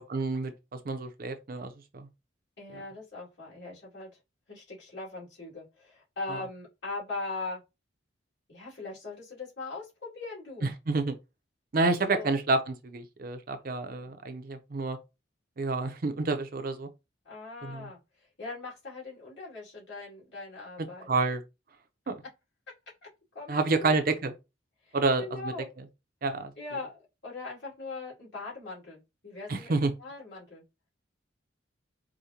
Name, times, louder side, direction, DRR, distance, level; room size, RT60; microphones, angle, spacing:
voice 1, 0.1-0.5 0.8-2.1 2.7-2.8 6.3-6.4 10.6-11.1 11.7-15.0 15.6-16.9 17.6-17.9 21.1-21.4 22.1-22.2 23.5-24.3 24.9-25.9 26.2-26.5 29.5-29.9, right 3 dB, 50° right, 0.6 m, -29 dB
voice 2, 2.6-4.1 4.5-7.6 8.5-10.7 11.8-12.3 14.0-14.1 17.2-18.0 18.4-21.1 23.3-24.0 24.8-25.7 26.6-30.6, left 3 dB, 65° left, 2.4 m, -40 dB
4.9 x 2.2 x 2.8 m
head